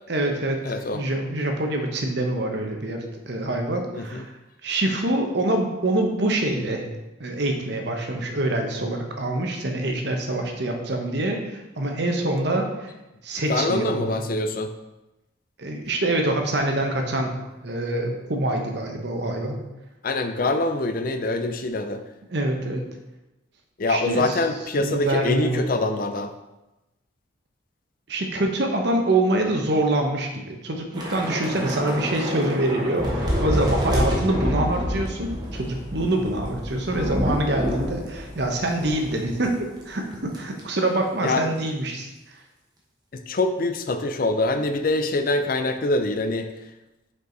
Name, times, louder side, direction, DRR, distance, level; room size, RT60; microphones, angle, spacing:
voice 1, 0.1-0.6 0.9-4.3 4.6-6.8 7.2-12.9 13.2-14.2 15.6-17.3 17.6-19.6 22.3-22.8 23.9-24.4 24.8-25.7 28.1-39.5 39.9-42.1, right 1 dB, 55° right, 3 dB, 0.9 m, -25 dB
voice 2, 0.6-1.0 3.9-4.2 13.5-14.7 20.0-22.0 23.8-26.3 41.2-41.5 43.1-46.5, left 2 dB, 45° left, 7 dB, 0.5 m, -24 dB
Thunder / Rain, 30.9-39.5 39.8-40.0 40.3-40.6, equal, 20° right, 1.0 m, -28 dB
5.5 x 4.7 x 3.9 m, 0.99 s
head